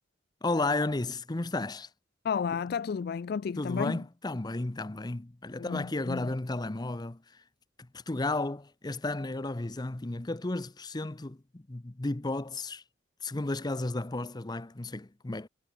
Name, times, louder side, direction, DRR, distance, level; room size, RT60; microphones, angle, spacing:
voice 1, 0.4-1.9 3.6-7.2 7.9-12.8 13.2-15.5, left 2 dB, 25° left, 0.7 m, -33 dB
voice 2, 2.2-4.0 5.5-6.3, left 6 dB, 55° left, 0.4 m, -32 dB
head